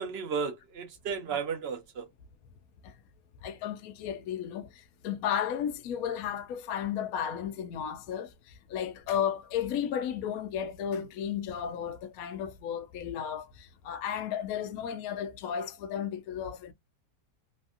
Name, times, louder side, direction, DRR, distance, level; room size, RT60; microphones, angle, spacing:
voice 1, 0.0-2.1, right 6 dB, 55° right, 0.7 m, -34 dB
voice 2, 3.4-8.3 8.7-16.7, left 9 dB, 70° left, 0.9 m, -34 dB
3.2 x 2.5 x 2.4 m
omnidirectional pair, 1.8 m